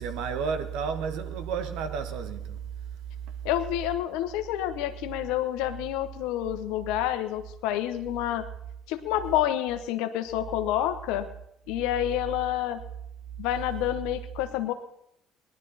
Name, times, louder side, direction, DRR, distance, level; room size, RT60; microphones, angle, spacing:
voice 1, 0.0-2.6, right 6 dB, 75° right, 1.3 m, -31 dB
voice 2, 3.4-8.4 8.9-11.3 11.7-12.8 13.4-14.7, left 12 dB, 80° left, 1.1 m, -28 dB
18.5 x 11.5 x 4.2 m
hypercardioid pair, 65°, 0 cm